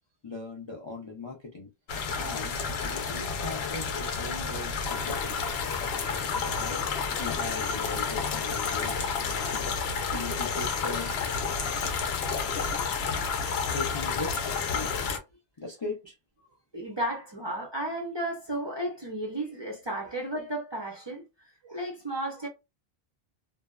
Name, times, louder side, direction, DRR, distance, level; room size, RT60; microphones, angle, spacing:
voice 1, 0.2-1.7 2.1-2.6 2.8-5.4 6.3-9.7 10.1-11.1 13.6-14.9 15.6-16.2, left 3 dB, 40° left, 0.4 m, -39 dB
sound 1, 1.9-15.2, left 5 dB, 75° left, 0.8 m, -30 dB
voice 2, 16.7-22.5, right 1 dB, 35° right, 0.5 m, -34 dB
2.6 x 2.1 x 2.2 m
omnidirectional pair, 1.1 m